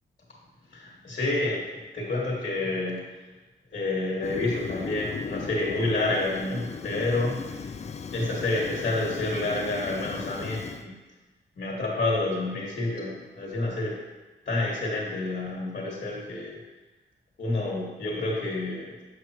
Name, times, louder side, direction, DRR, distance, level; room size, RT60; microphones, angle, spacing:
voice 1, 0.7-1.7 1.9-3.1 3.7-7.6 8.1-10.9 11.6-13.9 14.4-16.6 17.4-18.9, left 2 dB, 55° left, -4 dB, 1.6 m, -29 dB
Fire, 4.2-10.8, left 5 dB, 35° left, 0.4 m, -37 dB
7.7 x 5.3 x 2.9 m, 1.2 s
cardioid pair, 75°, 20 cm